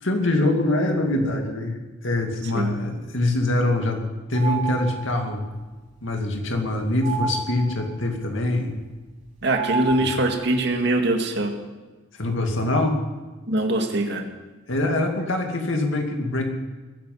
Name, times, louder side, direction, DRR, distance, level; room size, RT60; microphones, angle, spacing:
voice 1, 0.0-4.0 4.3-5.5 6.0-8.7 10.0-10.1 12.2-13.0 14.7-16.5, left 1 dB, 65° left, 3 dB, 2.5 m, -24 dB
sound 1, 4.3-5.3 7.0-8.0 9.5-10.6, right 5 dB, 35° right, 2.8 m, -30 dB
voice 2, 9.4-11.6 13.5-14.3, right 2 dB, 55° right, 4 dB, 2.0 m, -23 dB
21.0 x 11.0 x 5.6 m, 1.2 s
head